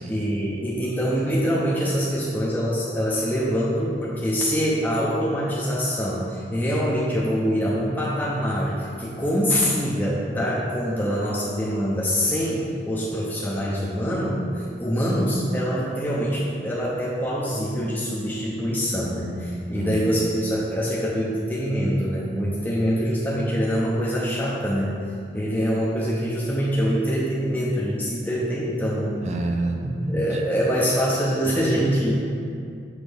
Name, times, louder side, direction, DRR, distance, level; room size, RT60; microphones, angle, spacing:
voice 1, 0.0-24.9 25.3-29.2 30.1-32.1, equal, 10° left, -7 dB, 0.6 m, -24 dB
voice 2, 19.7-20.2 29.2-30.4, right 1 dB, 40° right, 2 dB, 0.4 m, -28 dB
6.2 x 4.6 x 3.4 m, 2.4 s
head